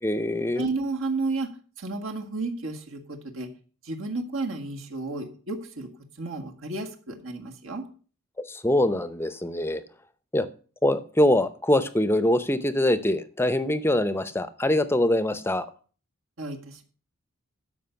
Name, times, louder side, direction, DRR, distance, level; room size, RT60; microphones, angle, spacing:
voice 1, 0.0-0.7 8.4-9.8 10.3-10.5 10.8-15.7, left 1 dB, 10° left, 0.6 m, -23 dB
voice 2, 0.6-1.5 1.8-3.5 3.8-5.9 6.2-7.8 16.4-16.8, right 3 dB, 70° right, 1.8 m, -32 dB
13.0 x 5.2 x 7.0 m
head